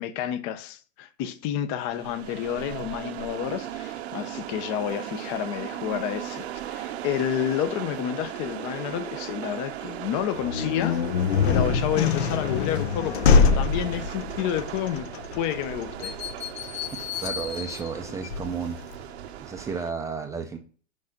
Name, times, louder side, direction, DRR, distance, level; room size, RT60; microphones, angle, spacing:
voice 1, 0.0-11.0 11.4-15.1 15.4-16.2, left 10 dB, 40° left, 0.8 m, -30 dB
sound 1, 1.9-19.9, right 12 dB, 70° right, 0.9 m, -37 dB
sound 2, 10.3-19.0, left 5 dB, 70° left, 1.1 m, -25 dB
voice 2, 17.2-18.8 19.4-20.6, right 5 dB, 10° right, 0.5 m, -32 dB
6.3 x 5.2 x 5.8 m
supercardioid pair, 150°, 33 cm